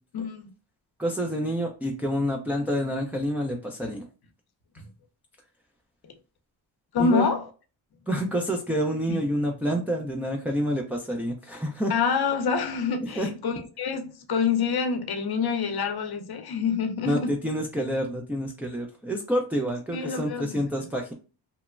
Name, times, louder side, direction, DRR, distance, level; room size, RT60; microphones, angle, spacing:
voice 1, 0.1-0.5 6.9-7.5 9.1-9.2 11.9-17.3 19.9-20.6, left 5 dB, 55° left, 0.7 m, -26 dB
voice 2, 1.0-4.0 7.0-7.2 8.1-11.9 13.1-13.3 17.0-21.1, equal, 5° right, 0.4 m, -28 dB
3.0 x 2.1 x 2.4 m
cardioid pair, 85°, 44 cm